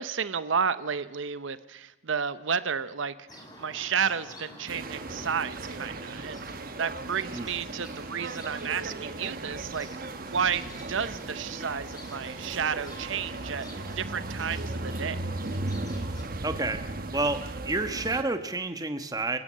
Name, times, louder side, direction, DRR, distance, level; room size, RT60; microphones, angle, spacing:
voice 1, 0.0-15.3, right 6 dB, 70° right, 14 dB, 0.8 m, -32 dB
sound 1, 3.3-16.2, left 1 dB, 20° left, 4.2 m, -48 dB
sound 2, 4.7-18.2, right 2 dB, 45° right, 1.1 m, -37 dB
voice 2, 16.4-16.8 17.1-19.4, right 2 dB, 20° right, 8 dB, 1.2 m, -29 dB
26.5 x 16.0 x 7.4 m, 1.1 s
head